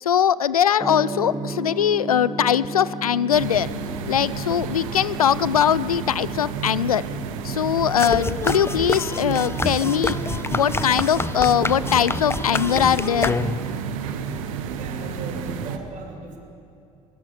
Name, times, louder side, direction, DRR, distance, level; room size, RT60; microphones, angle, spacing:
voice 1, 0.0-3.7 4.1-7.0 7.4-10.2 10.5-13.4, left 9 dB, 85° left, 19 dB, 0.5 m, -21 dB
Gong, 0.8-14.5, right 1 dB, 20° right, 2.5 m, -37 dB
sound 1, 3.3-15.8, right 6 dB, 70° right, 1.6 m, -31 dB
sound 2, 8.0-13.8, left 3 dB, 15° left, 0.9 m, -27 dB
voice 2, 14.8-16.4, right 3 dB, 45° right, 2 dB, 5.9 m, -37 dB
22.0 x 21.0 x 8.1 m, 2.7 s
figure-of-eight pair, 60°, 18 cm